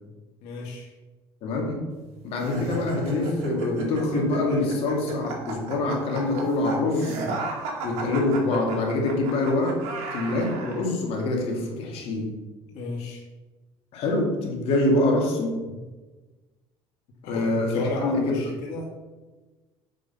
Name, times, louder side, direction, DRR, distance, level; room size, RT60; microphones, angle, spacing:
voice 1, 0.4-0.9 12.7-13.3 15.7-15.8 17.2-17.4 17.7-18.9, left 3 dB, 90° left, -1 dB, 2.2 m, -33 dB
voice 2, 1.4-1.9 2.2-7.3 7.8-9.8 10.1-12.4 13.9-15.6 17.2-18.4, left 2 dB, 60° left, 0 dB, 2.6 m, -25 dB
sound 1, 2.4-10.8, right 2 dB, 75° right, 2.2 m, -33 dB
7.9 x 5.3 x 7.1 m, 1.2 s
cardioid pair, 145°, 11 cm